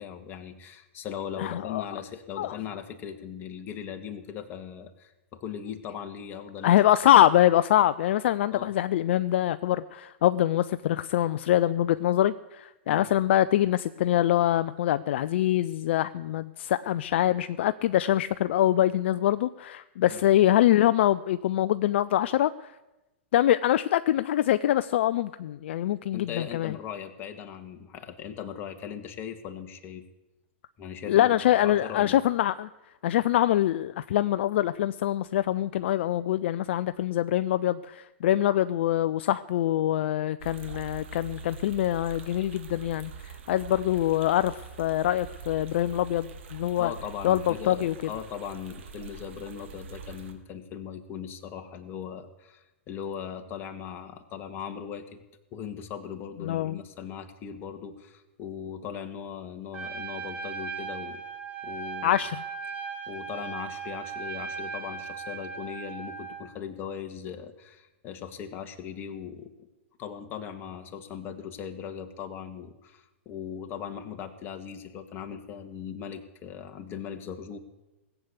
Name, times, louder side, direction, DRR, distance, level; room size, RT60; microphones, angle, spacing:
voice 1, 0.0-6.8 8.5-8.7 12.9-13.1 20.1-20.2 26.1-30.1 30.8-31.3 31.6-32.2 46.8-55.2 55.5-61.2 61.6-62.3 63.1-69.7 70.0-77.6, left 8 dB, 30° left, 6 dB, 1.7 m, -39 dB
voice 2, 1.4-1.8 2.4-2.5 6.6-22.5 23.3-26.7 31.1-32.7 33.0-46.9 47.2-47.9 56.4-56.8 62.0-62.4, left 12 dB, 60° left, 14 dB, 0.5 m, -24 dB
sound 1, 40.4-50.3, right 5 dB, 65° right, 2.3 m, -44 dB
Trumpet, 59.7-66.4, right 5 dB, 20° right, 2.6 m, -37 dB
18.5 x 8.1 x 8.4 m, 1.0 s
hypercardioid pair, 115°, 7 cm